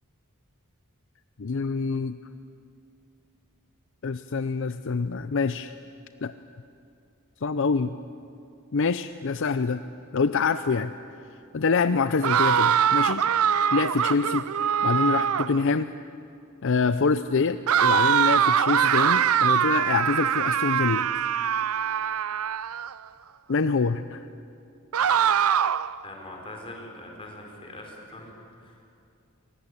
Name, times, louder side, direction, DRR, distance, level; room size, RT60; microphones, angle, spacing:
voice 1, 1.4-2.2 4.0-5.7 6.2-6.3 7.4-7.9 8.7-9.8 10.1-10.9 11.5-13.2 13.7-14.5 14.8-15.9 16.6-21.1 23.5-24.3, left 4 dB, 60° left, 12 dB, 0.6 m, -25 dB
sound 1, 12.2-15.6 17.7-22.9 24.9-26.0, right 8 dB, 85° right, 0.6 m, -23 dB
voice 2, 26.0-28.8, left 1 dB, 25° left, 1 dB, 4.8 m, -42 dB
23.5 x 20.0 x 9.9 m, 2.6 s
head